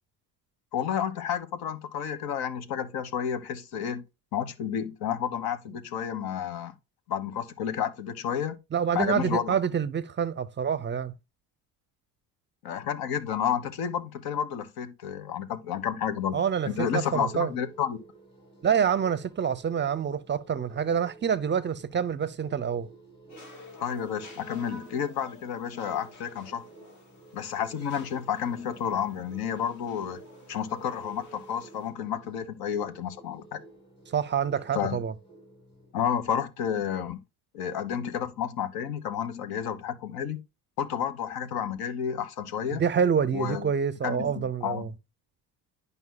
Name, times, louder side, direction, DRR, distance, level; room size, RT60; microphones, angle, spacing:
voice 1, 0.7-4.0 4.3-6.7 7.1-8.6 8.9-9.5 12.6-16.4 16.7-18.0 23.8-26.7 27.3-30.2 30.5-33.6 34.7-35.0 35.9-37.2 37.5-40.4 40.8-42.8 43.3-43.7 44.0-44.8, left 8 dB, 70° left, 1.3 m, -31 dB
voice 2, 8.7-11.1 16.3-17.5 18.6-22.9 34.1-35.1 42.7-44.9, right 7 dB, 30° right, 0.6 m, -27 dB
sound 1, 16.7-36.1, right 2 dB, 15° left, 4.5 m, -51 dB
sound 2, 23.3-31.9, left 1 dB, 50° left, 3.2 m, -52 dB
11.0 x 5.4 x 2.2 m
cardioid pair, 120°, 37 cm